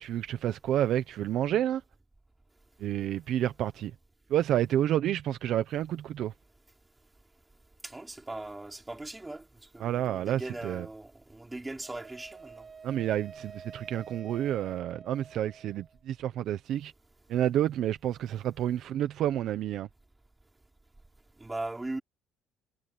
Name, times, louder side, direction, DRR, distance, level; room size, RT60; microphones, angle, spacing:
voice 1, 0.0-1.8 2.8-3.9 4.3-6.3 9.8-10.9 12.8-16.9 17.3-19.9, right 11 dB, 50° right, 1.0 m, -29 dB
voice 2, 7.8-9.4 9.7-12.6 21.4-22.0, right 2 dB, 10° right, 3.7 m, -39 dB
Wind instrument woodwind instrument, 11.8-16.0, right 5 dB, 25° right, 7.5 m, -49 dB
cardioid pair, 165°, 0 cm